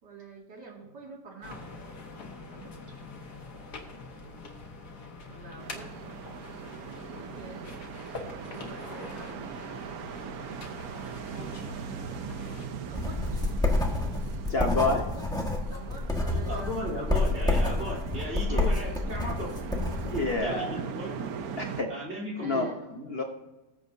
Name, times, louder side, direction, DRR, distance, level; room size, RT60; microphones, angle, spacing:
voice 1, 0.0-1.7 2.5-3.0 5.3-5.9 6.9-7.7 8.4-9.5 12.9-13.4 15.0-15.3 15.7-16.9 18.6-18.7 22.4-22.8, right 4 dB, 85° right, -1 dB, 2.9 m, -47 dB
sound 1, 1.4-12.7, left 3 dB, 70° left, 2.0 m, -44 dB
sound 2, 5.6-21.8, right 6 dB, 65° right, 1.2 m, -40 dB
sound 3, 12.9-20.3, left 2 dB, ahead, 1.4 m, -28 dB
voice 2, 14.5-15.1 15.7-15.8 18.5-18.7 20.1-20.8 21.6-21.9 22.4-22.7 23.1-23.2, left 2 dB, 45° left, 2 dB, 1.0 m, -28 dB
voice 3, 16.3-19.5 20.4-21.2 21.9-23.1, equal, 40° right, -4 dB, 3.7 m, -36 dB
20.0 x 8.0 x 2.7 m, 1.1 s
omnidirectional pair, 1.8 m